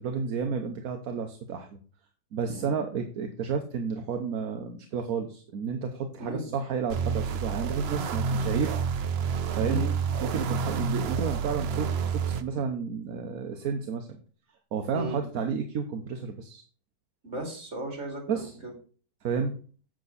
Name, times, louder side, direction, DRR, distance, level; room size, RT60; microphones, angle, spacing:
voice 1, 0.0-1.7 2.3-8.7 9.6-9.8 10.2-14.1 14.7-16.6 18.3-18.5 19.2-19.5, right 6 dB, 60° right, 4 dB, 1.2 m, -31 dB
voice 2, 6.2-6.5 9.7-9.9 14.9-15.2 17.2-18.7, right 1 dB, 40° right, 1 dB, 3.1 m, -36 dB
sound 1, 6.9-12.4, right 6 dB, 75° right, 0.5 m, -29 dB
7.6 x 7.6 x 4.0 m, 0.40 s
omnidirectional pair, 1.9 m